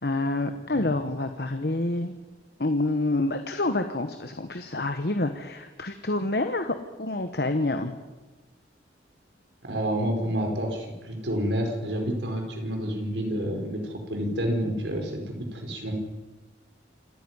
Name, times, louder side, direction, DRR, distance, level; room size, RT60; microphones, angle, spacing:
voice 1, 0.0-2.1 2.6-7.9, left 2 dB, 60° left, 8 dB, 1.2 m, -27 dB
voice 2, 9.6-15.9, equal, 80° right, 3 dB, 4.6 m, -29 dB
27.5 x 10.0 x 9.6 m, 1.2 s
head